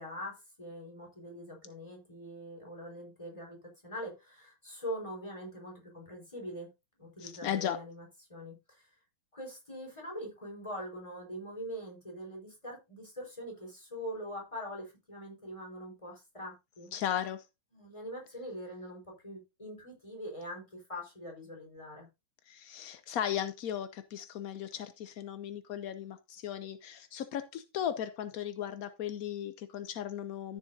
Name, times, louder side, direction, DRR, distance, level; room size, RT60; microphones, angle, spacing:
voice 1, 0.0-6.7 7.0-8.9 9.3-16.9 17.7-22.1, equal, 15° left, 4.6 m, -43 dB
voice 2, 7.2-7.8 16.9-17.4 22.5-30.6, left 10 dB, 70° left, 0.8 m, -36 dB
13.5 x 7.3 x 2.7 m
omnidirectional pair, 2.3 m